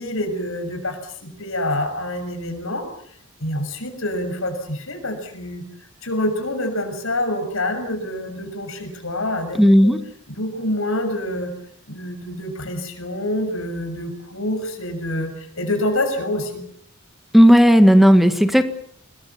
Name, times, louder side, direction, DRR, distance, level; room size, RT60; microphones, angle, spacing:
voice 1, 0.0-2.9 3.4-5.6 6.0-9.6 10.3-11.5 11.9-16.6, left 1 dB, 70° left, 6 dB, 6.7 m, -26 dB
voice 2, 9.6-10.0 17.3-18.6, equal, ahead, 8 dB, 1.7 m, -12 dB
26.5 x 21.0 x 7.3 m, 0.66 s
head